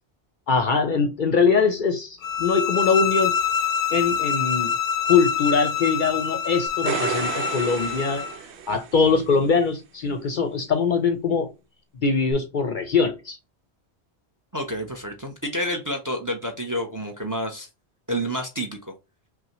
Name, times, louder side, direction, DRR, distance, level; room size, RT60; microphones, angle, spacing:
voice 1, 0.5-3.3 3.9-4.7 5.1-8.2 8.7-11.5 12.0-13.4, left 5 dB, 55° left, 0.6 m, -22 dB
sound 1, 2.2-8.4, left 7 dB, 85° left, 0.9 m, -26 dB
sound 2, 6.7-9.2 12.3-12.4, right 7 dB, 80° right, 0.9 m, -31 dB
voice 2, 14.5-17.7 18.1-18.9, equal, 20° right, 0.6 m, -29 dB
5.6 x 2.1 x 2.9 m
omnidirectional pair, 1.1 m